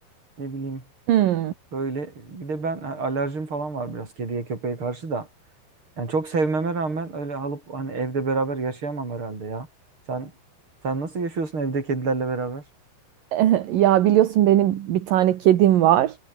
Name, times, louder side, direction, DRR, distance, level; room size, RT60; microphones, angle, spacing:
voice 1, 0.4-0.8 1.7-5.3 6.0-9.7 10.1-10.3 10.8-12.6, right 3 dB, 30° right, 6.1 m, -28 dB
voice 2, 1.1-1.5 13.3-16.2, right 12 dB, 60° right, 2.8 m, -18 dB
omnidirectional pair, 5.2 m